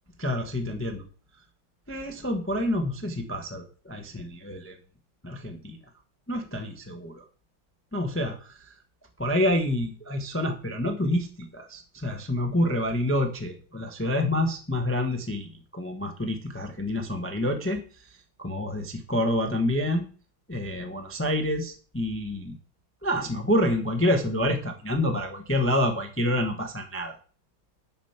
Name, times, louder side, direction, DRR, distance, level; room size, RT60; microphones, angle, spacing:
voice 1, 0.2-1.0 1.9-4.8 5.2-5.8 6.3-7.2 7.9-8.5 9.2-17.8 18.4-20.1 20.5-22.6 23.0-27.1, left 1 dB, 10° left, 5 dB, 0.7 m, -28 dB
9.2 x 6.1 x 5.8 m, 0.39 s
omnidirectional pair, 2.4 m